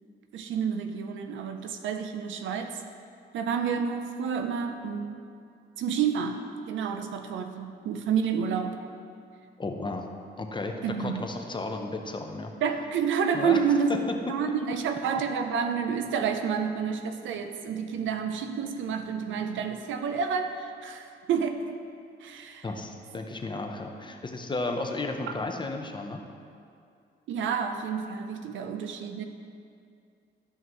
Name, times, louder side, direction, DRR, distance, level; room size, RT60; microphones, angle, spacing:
voice 1, 0.3-2.8 3.3-5.2 5.8-8.8 10.8-11.3 12.6-21.8 22.2-22.6 27.3-29.2, right 6 dB, 75° right, 6 dB, 0.6 m, -29 dB
voice 2, 9.6-10.1 10.4-12.5 13.3-13.6 13.9-14.2 22.6-26.2, left 2 dB, 25° left, 4 dB, 0.8 m, -33 dB
12.5 x 5.6 x 3.1 m, 2.4 s
cardioid pair, 90°, 20 cm